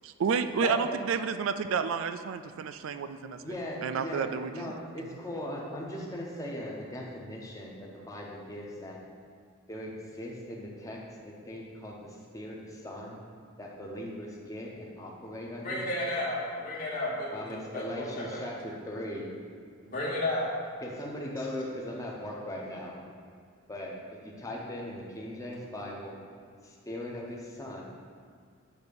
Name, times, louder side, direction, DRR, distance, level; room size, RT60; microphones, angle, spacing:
voice 1, 0.2-3.5 3.8-4.7, right 6 dB, 65° right, 11 dB, 0.3 m, -30 dB
voice 2, 3.4-4.3 4.5-9.0 9.7-13.2 13.6-15.8 17.3-19.3 20.8-22.9 23.7-23.9 24.4-26.1 26.6-27.8, left 1 dB, 15° left, -3 dB, 0.7 m, -39 dB
voice 3, 15.6-17.8 18.1-18.4 19.8-20.5, left 1 dB, 40° left, -7 dB, 1.2 m, -32 dB
7.9 x 2.8 x 5.2 m, 2.1 s
head